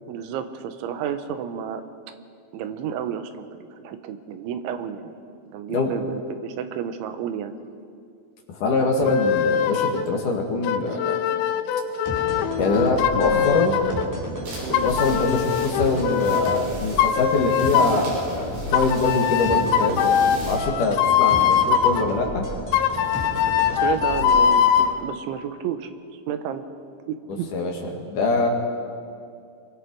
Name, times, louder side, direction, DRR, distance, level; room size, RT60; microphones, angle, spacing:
voice 1, 0.1-1.8 2.5-5.2 5.5-7.5 14.6-14.8 23.8-25.9 26.3-26.6 27.1-27.5, right 8 dB, 85° right, 8 dB, 3.5 m, -31 dB
voice 2, 8.5-11.2 11.9-12.1 12.5-13.8 14.8-22.4 27.5-28.5, left 3 dB, 55° left, 1 dB, 3.0 m, -24 dB
sound 1, 9.1-10.1 10.6-14.1 14.7-16.6 17.0-18.1 18.7-22.0 22.7-24.9, left 8 dB, 80° left, 2.4 m, -21 dB
sound 2, 12.1-24.9, equal, 5° right, 4.2 m, -33 dB
sound 3, 14.4-20.6, right 1 dB, 55° right, 8.0 m, -42 dB
27.5 x 23.5 x 4.7 m, 2.3 s
omnidirectional pair, 5.3 m